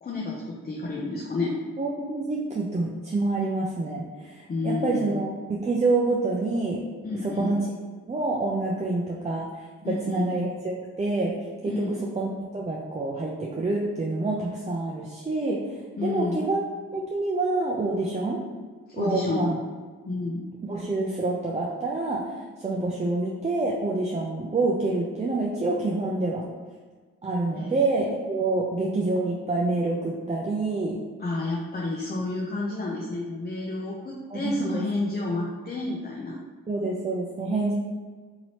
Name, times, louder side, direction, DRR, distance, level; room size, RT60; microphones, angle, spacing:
voice 1, 0.0-1.6 4.5-5.2 7.0-7.6 9.8-10.3 11.7-12.0 16.0-16.4 19.0-19.5 20.0-20.4 27.6-27.8 31.2-36.4, left 2 dB, 25° left, -3 dB, 0.6 m, -30 dB
voice 2, 1.8-6.8 7.2-7.6 8.1-11.3 11.6-15.6 16.0-16.6 16.9-18.4 18.9-19.6 20.6-22.3 22.6-26.4 27.2-31.0 34.3-34.8 36.7-37.7, right 2 dB, 20° right, -2 dB, 0.5 m, -27 dB
2.9 x 2.6 x 3.0 m, 1.5 s
supercardioid pair, 45°, 35 cm